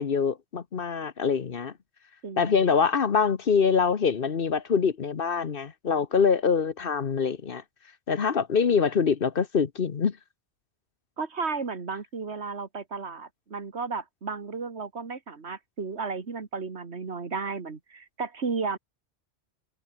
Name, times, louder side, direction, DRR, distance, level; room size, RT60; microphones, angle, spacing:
voice 1, 0.0-1.7 2.4-7.6 8.1-10.1, left 6 dB, 55° left, 1.2 m, -24 dB
voice 2, 2.2-2.8 11.2-18.8, right 4 dB, 80° right, 2.2 m, -34 dB
omnidirectional pair, 1.1 m